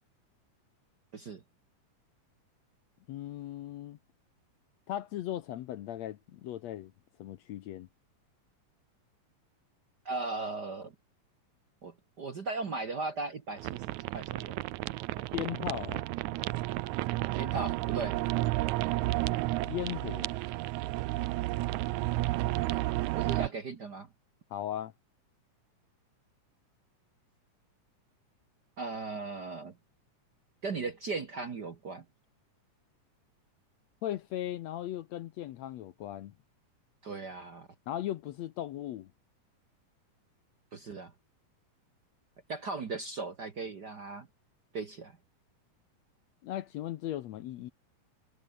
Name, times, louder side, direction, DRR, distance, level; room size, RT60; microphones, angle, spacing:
voice 1, 3.1-4.0 4.9-6.9 7.2-7.9 15.3-16.1 19.7-20.3 24.5-24.9 34.0-36.3 37.9-39.1 46.4-47.7, left 12 dB, 70° left, 1.8 m, -37 dB
voice 2, 10.0-10.9 11.8-13.8 14.1-14.6 15.2-15.4 17.4-18.2 23.1-24.1 28.8-29.7 30.6-32.0 37.0-37.7 40.7-41.1 42.5-44.3 44.7-45.2, right 3 dB, 45° right, 1.5 m, -37 dB
sound 1, 13.6-23.5, right 18 dB, 75° right, 1.9 m, -32 dB
omnidirectional pair, 3.7 m